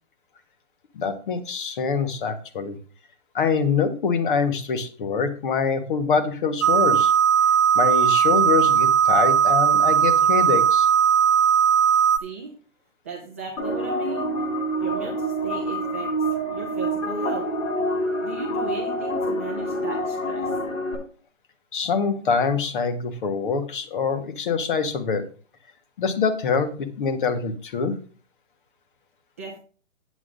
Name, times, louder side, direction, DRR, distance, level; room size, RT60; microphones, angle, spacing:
voice 1, 0.9-2.8 3.3-7.1 7.7-10.9 21.7-25.2 26.0-27.9, left 5 dB, 40° left, 10 dB, 1.4 m, -24 dB
sound 1, 6.6-12.2, right 8 dB, 90° right, 0.7 m, -18 dB
voice 2, 12.2-12.5 13.0-14.3 14.8-17.5 18.2-20.5 29.4-29.6, right 4 dB, 10° right, -1 dB, 0.6 m, -36 dB
sound 2, 13.6-20.9, right 1 dB, 90° left, 4.9 m, -27 dB
8.7 x 8.4 x 3.8 m, 0.40 s
hypercardioid pair, 170°, 39 cm